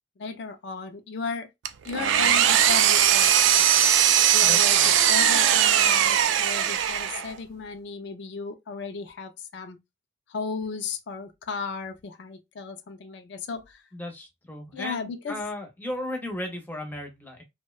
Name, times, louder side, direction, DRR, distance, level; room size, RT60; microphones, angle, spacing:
voice 1, 0.2-1.5 1.8-3.9 4.3-9.8 10.3-13.8 14.7-15.4, left 4 dB, 60° left, 0.4 m, -35 dB
Engine, 1.6-7.4, right 10 dB, 70° right, 0.3 m, -20 dB
voice 2, 4.4-5.0 13.9-17.4, left 1 dB, 10° left, 0.6 m, -35 dB
2.6 x 2.1 x 2.3 m
head